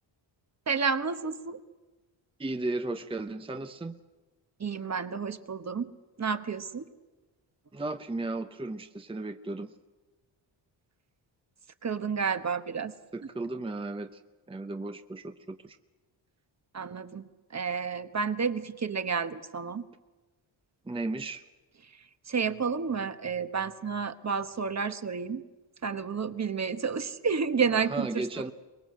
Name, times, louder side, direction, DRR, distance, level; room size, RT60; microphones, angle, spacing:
voice 1, 0.7-1.6 4.6-5.9 6.2-6.9 11.8-12.9 16.7-17.2 17.5-19.9 22.3-25.4 25.8-28.3, right 5 dB, 35° right, 10 dB, 1.2 m, -30 dB
voice 2, 2.4-4.0 7.7-9.7 13.1-14.2 14.5-15.8 20.8-21.4 27.8-28.5, right 2 dB, 10° right, 8 dB, 0.8 m, -35 dB
24.0 x 21.0 x 7.7 m, 1.2 s
cardioid pair, 95°, 47 cm